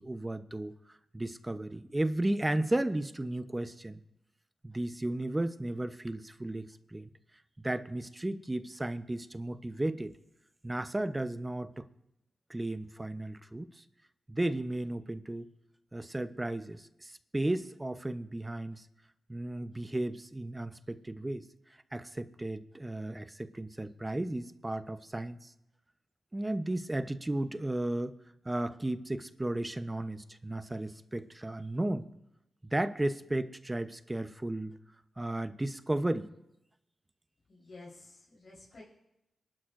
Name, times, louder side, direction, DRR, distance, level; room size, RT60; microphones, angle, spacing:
voice 1, 0.0-4.0 4.6-7.1 7.6-10.2 10.6-11.9 12.5-13.8 14.3-15.5 15.9-18.9 19.3-21.5 21.9-25.5 26.3-28.2 28.4-32.1 32.6-34.8 35.2-36.3, right 1 dB, 20° right, 11 dB, 0.9 m, -34 dB
voice 2, 37.5-38.8, left 2 dB, 65° left, -6 dB, 4.1 m, -51 dB
22.0 x 11.5 x 2.6 m, 0.88 s
cardioid pair, 45°, 0 cm